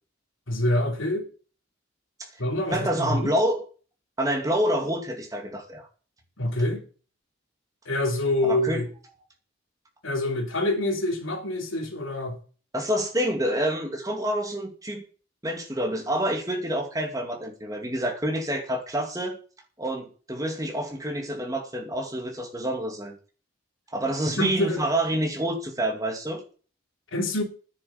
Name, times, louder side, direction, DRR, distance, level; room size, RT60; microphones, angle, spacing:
voice 1, 0.5-1.3 2.4-3.3 6.4-6.8 7.9-8.9 10.0-12.4 24.4-24.9 27.1-27.4, left 1 dB, 75° left, 3.0 m, -26 dB
voice 2, 2.7-3.6 4.2-5.9 8.4-8.8 9.2-9.3 12.7-15.0 15.4-19.4 19.8-23.1 23.9-26.4, right 1 dB, 15° right, 2.4 m, -27 dB
11.0 x 10.0 x 7.1 m
head